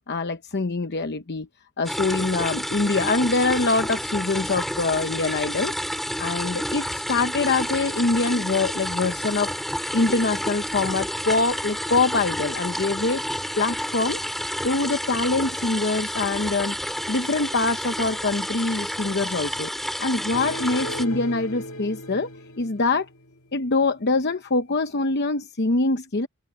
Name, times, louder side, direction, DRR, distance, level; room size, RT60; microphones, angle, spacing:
voice 1, 0.1-1.5 1.8-5.7 6.2-9.5 9.9-13.2 13.6-14.2 14.6-16.7 17.1-19.7 20.0-22.3 22.6-23.1 23.5-26.3, left 3 dB, 50° left, 0.9 m, -24 dB
sound 1, 1.8-21.0, equal, ahead, 2.5 m, -30 dB
sound 2, 20.3-23.4, equal, 70° left, 2.0 m, -36 dB
head